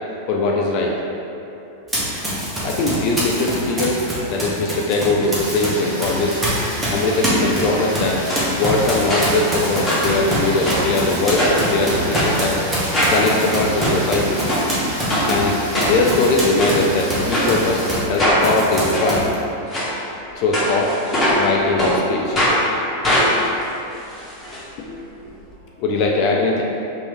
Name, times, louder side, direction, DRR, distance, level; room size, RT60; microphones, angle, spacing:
voice 1, 0.3-1.0 2.6-4.0 4.3-6.4 6.9-8.2 8.5-12.6 13.1-14.5 15.3-19.3 20.4-21.0 21.3-22.4 25.8-26.6, left 3 dB, 45° left, -1 dB, 0.3 m, -20 dB
Run, 1.9-5.7 6.0-18.1 18.4-19.3, right 1 dB, 10° right, 0.8 m, -24 dB
Rain, 5.3-18.0, equal, 80° right, 1.0 m, -32 dB
sound 1, 8.3-8.4 9.1-9.5 9.8-10.9 11.4-11.7 12.1-12.3 12.9-13.2 13.6-13.9 14.5-14.6 15.1-15.3 15.7-16.2 16.6-16.8 17.3-17.5 18.2-18.4 18.9-19.0 19.7-19.9 20.5-21.5 21.8-21.9 22.3-22.6 23.0-24.6 24.9-25.0 25.2-25.3, equal, 15° left, 0.9 m, -21 dB
voice 2, 22.6-23.1 23.4-23.5 24.8-25.9, left 1 dB, 25° right, -9 dB, 1.1 m, -45 dB
3.0 x 2.5 x 3.1 m, 2.8 s
figure-of-eight pair, 90°, 0 cm